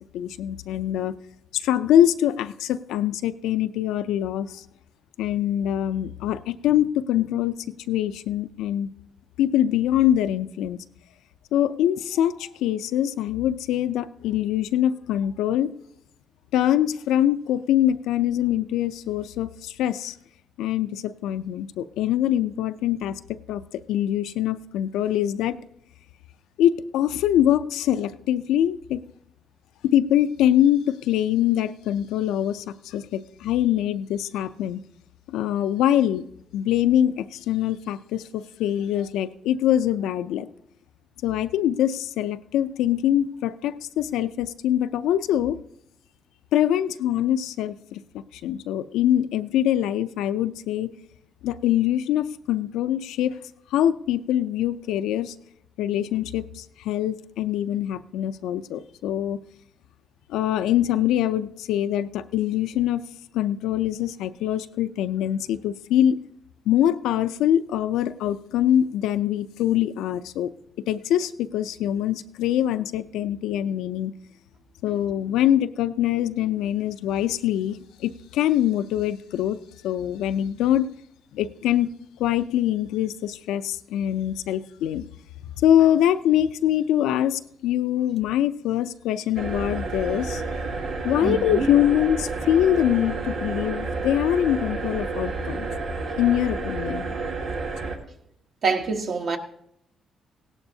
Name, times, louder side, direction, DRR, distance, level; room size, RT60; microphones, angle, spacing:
voice 1, 0.1-1.1 1.5-4.6 5.2-7.6 7.9-8.9 9.4-10.8 11.5-15.7 16.5-20.1 20.6-23.1 23.5-23.6 23.9-25.6 26.6-29.0 29.8-34.8 35.3-36.2 36.5-40.5 41.2-45.6 46.5-48.0 48.4-50.9 51.4-53.3 53.7-55.3 55.8-59.4 60.3-63.0 63.3-66.2 66.7-70.5 70.9-74.1 74.8-79.6 79.8-80.9 81.3-81.9 82.2-85.0 85.6-90.4 91.0-95.7 96.2-97.2, left 11 dB, 90° left, 0.4 m, -23 dB
sound 1, 89.3-98.0, right 3 dB, 75° right, 1.7 m, -30 dB
voice 2, 91.2-91.7 98.6-99.4, right 4 dB, 55° right, 1.3 m, -25 dB
16.5 x 11.5 x 2.7 m
cardioid pair, 90°, 0 cm